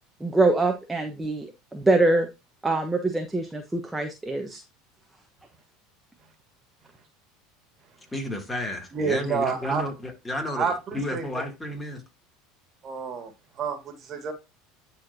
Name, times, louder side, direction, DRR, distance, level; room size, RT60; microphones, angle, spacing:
voice 1, 0.2-2.3 2.6-4.6, right 2 dB, 10° right, 1.2 m, -24 dB
voice 2, 8.1-12.0, left 1 dB, 15° left, 2.7 m, -32 dB
voice 3, 8.9-9.8 10.6-11.2 12.8-13.3 13.6-14.3, right 5 dB, 40° right, 1.9 m, -29 dB
10.5 x 4.4 x 2.7 m
hypercardioid pair, 90°, 0 cm